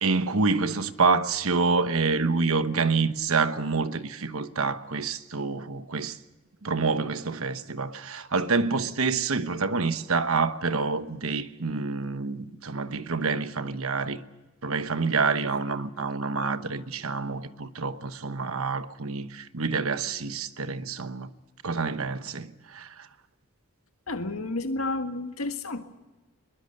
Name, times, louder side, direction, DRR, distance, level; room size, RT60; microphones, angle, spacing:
voice 1, 0.0-6.2 6.6-14.2 14.6-21.3 21.6-22.9, right 4 dB, 75° right, 1.1 m, -27 dB
voice 2, 24.1-25.8, left 2 dB, 80° left, 1.8 m, -31 dB
22.0 x 21.5 x 6.6 m
head